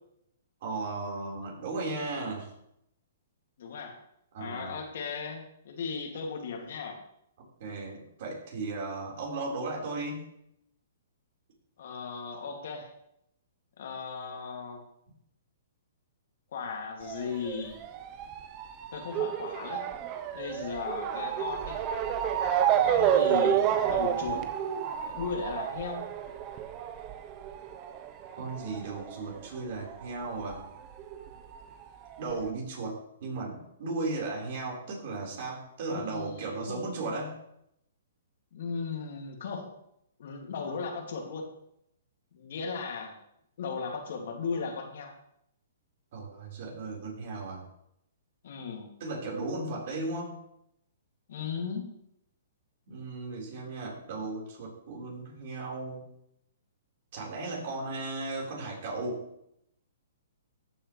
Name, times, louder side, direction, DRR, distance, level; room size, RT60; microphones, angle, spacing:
voice 1, 0.6-2.5 4.3-4.7 7.6-10.3 28.4-30.6 32.2-37.4 46.1-47.6 49.0-50.4 52.9-56.0 57.1-59.2, right 3 dB, 55° right, -2 dB, 4.3 m, -36 dB
voice 2, 3.6-4.0 4.4-7.0 11.8-12.9 13.8-14.8 16.5-17.8 18.9-19.9 20.3-21.8 22.8-24.5 25.1-26.1 35.9-36.8 38.5-39.7 40.2-41.5 42.3-43.2 43.6-45.1 48.4-48.9 51.3-51.8, left 5 dB, 65° left, 2 dB, 2.4 m, -36 dB
Motor vehicle (road) / Siren, 17.0-30.0 30.3-31.5 32.1-32.2 32.5-32.6, right 9 dB, 30° right, 0.8 m, -30 dB
13.5 x 7.2 x 3.2 m, 0.77 s
hypercardioid pair, 140°, 0 cm